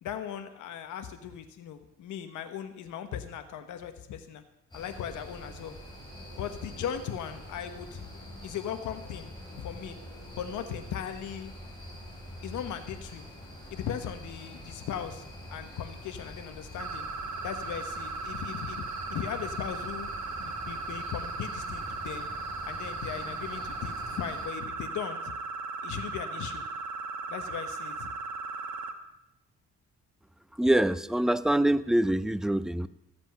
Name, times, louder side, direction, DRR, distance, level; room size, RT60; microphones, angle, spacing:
voice 1, 0.0-4.4 4.7-5.8 6.4-9.3 9.6-10.0 10.4-11.5 12.4-13.3 13.7-17.1 17.4-18.8 19.1-22.3 22.7-25.3 25.8-26.6 27.3-28.1, left 9 dB, 75° left, 8 dB, 1.1 m, -38 dB
sound 1, 4.7-24.5, equal, 15° left, 5.1 m, -45 dB
sound 2, 16.8-28.9, right 4 dB, 70° right, 1.4 m, -37 dB
voice 2, 30.6-32.9, right 1 dB, ahead, 15 dB, 0.4 m, -25 dB
14.0 x 8.1 x 5.8 m, 0.87 s
cardioid pair, 90°, 30 cm